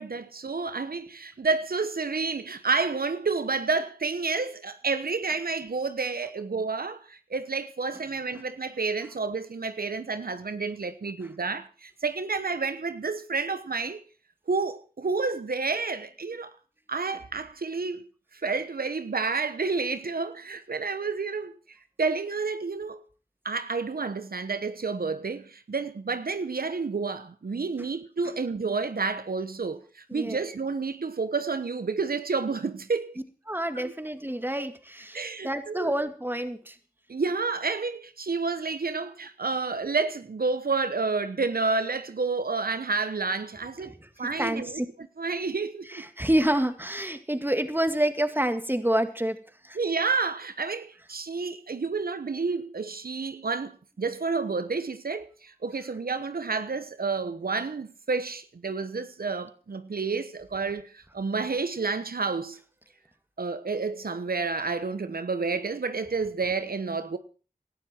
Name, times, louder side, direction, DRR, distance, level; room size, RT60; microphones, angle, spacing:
voice 1, 0.0-14.0 14.5-16.5 16.9-18.0 18.3-21.5 22.0-23.0 23.4-33.1 33.7-33.9 35.1-35.9 37.1-43.9 44.2-44.8 45.2-46.0 49.7-62.6 63.4-67.2, right 4 dB, 90° right, 1.0 m, -30 dB
voice 2, 33.5-36.7 44.4-44.9 45.9-49.4 49.7-49.8, right 1 dB, 15° right, 2.2 m, -28 dB
18.5 x 12.5 x 4.4 m
wide cardioid pair, 40°, 15 cm